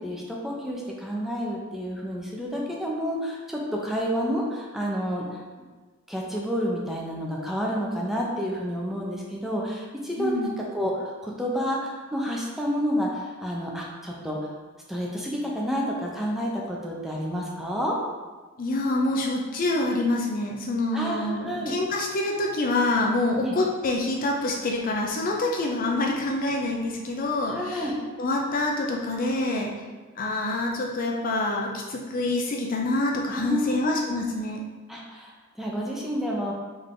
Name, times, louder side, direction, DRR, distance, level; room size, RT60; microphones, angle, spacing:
voice 1, 0.0-5.4 6.1-14.5 14.9-18.0 20.9-21.7 23.4-23.5 27.5-28.0 33.3-34.0 34.9-36.5, equal, ahead, -3 dB, 0.6 m, -29 dB
voice 2, 10.2-10.5 18.6-27.9 28.2-29.7 30.2-34.6, left 2 dB, 40° left, 0 dB, 0.5 m, -26 dB
3.8 x 3.3 x 3.7 m, 1.3 s
head